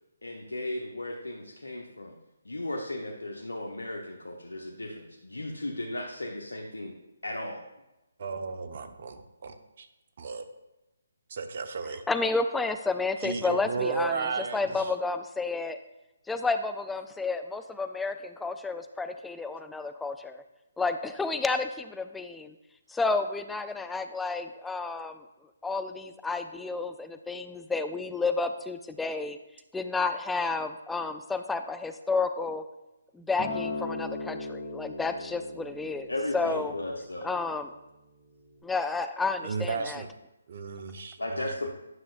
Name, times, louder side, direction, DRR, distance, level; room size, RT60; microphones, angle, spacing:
voice 1, 0.2-2.1 2.5-6.9 7.2-7.6 36.1-37.3 41.2-41.7, left 1 dB, 90° left, 0 dB, 0.8 m, -35 dB
voice 2, 8.2-9.5 10.2-10.4 11.3-12.0 13.2-14.6 39.4-40.1 40.5-41.5, right 4 dB, 55° right, 8 dB, 0.7 m, -33 dB
voice 3, 11.8-15.8 16.3-20.4 20.8-22.5 22.9-25.2 25.6-29.4 29.7-32.6 33.1-36.7 37.2-37.7 38.6-40.0, left 3 dB, 5° left, 9 dB, 0.3 m, -31 dB
Acoustic guitar, 33.4-37.7 38.5-38.6, left 3 dB, 25° left, 2.0 m, -38 dB
9.6 x 6.1 x 2.4 m, 0.96 s
figure-of-eight pair, 145°, 0 cm